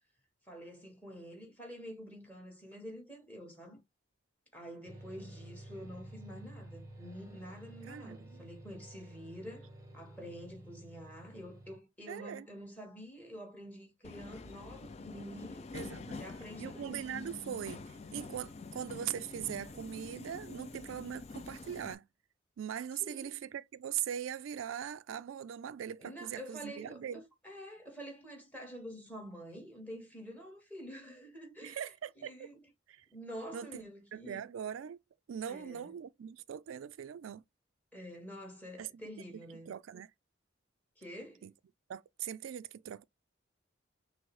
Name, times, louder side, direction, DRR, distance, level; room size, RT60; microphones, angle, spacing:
voice 1, 0.4-3.8 4.5-15.7 16.0-17.0 23.0-23.3 26.0-32.6 33.1-34.4 35.5-35.9 37.9-39.7 41.0-41.4, equal, 10° left, 1.5 m, -48 dB
sound 1, 4.9-11.8, right 1 dB, 15° right, 0.9 m, -51 dB
voice 2, 7.9-8.4 12.1-12.5 15.7-16.2 16.6-22.1 22.6-27.2 31.6-32.5 32.9-33.1 33.5-33.8 34.1-35.0 35.3-37.4 38.8-38.9 39.7-40.1 41.4-41.5 41.9-43.0, right 9 dB, 90° right, 0.3 m, -41 dB
Subway metro underground, 14.0-21.9, left 3 dB, 35° left, 0.3 m, -46 dB
6.1 x 2.1 x 3.1 m
head